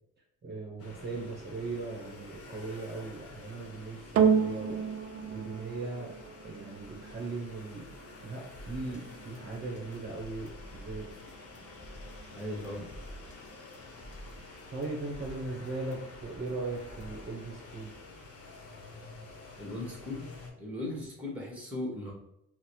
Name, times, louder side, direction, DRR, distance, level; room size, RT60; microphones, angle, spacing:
voice 1, 0.4-4.1 4.4-4.8 5.3-6.1 6.4-7.9 8.2-11.1 14.7-17.9, right 3 dB, 35° right, -3 dB, 0.9 m, -38 dB
sound 1, 0.8-20.5, left 3 dB, 50° left, 0.9 m, -49 dB
sound 2, 4.2-12.7 13.4-13.5, right 6 dB, 55° right, 0.4 m, -33 dB
sound 3, 8.6-17.3, equal, 25° left, 0.4 m, -50 dB
voice 2, 12.3-12.9 19.6-20.2 20.6-22.1, left 1 dB, 5° right, -2 dB, 1.2 m, -37 dB
4.0 x 2.1 x 3.0 m, 0.80 s
cardioid pair, 90°, 30 cm